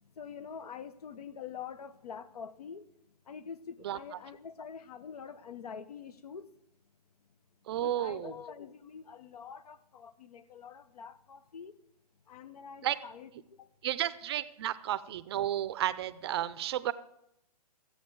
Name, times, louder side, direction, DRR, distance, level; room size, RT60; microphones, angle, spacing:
voice 1, 0.2-2.8 3.3-6.5 7.7-11.7 12.3-13.3 13.6-13.7, left 7 dB, 70° left, 14 dB, 0.9 m, -45 dB
voice 2, 7.7-8.3 12.8-13.0 13.8-16.9, right 12 dB, 40° right, 15 dB, 0.5 m, -32 dB
15.0 x 8.0 x 4.7 m, 0.82 s
hypercardioid pair, 145°, 20 cm